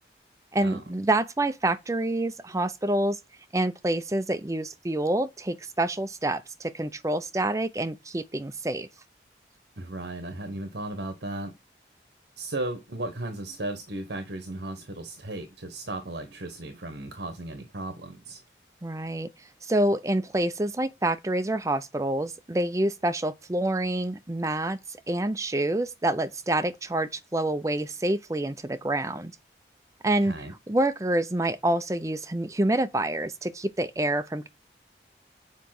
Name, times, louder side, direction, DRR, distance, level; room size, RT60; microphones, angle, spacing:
voice 1, 0.5-3.2 3.5-8.9 18.8-19.3 19.6-24.8 25.1-29.3 30.0-30.3 30.7-34.5, right 1 dB, 20° right, 0.5 m, -27 dB
voice 2, 9.8-11.5 12.4-18.4 30.2-30.5, right 2 dB, 70° right, 1.2 m, -35 dB
7.3 x 4.9 x 5.9 m
head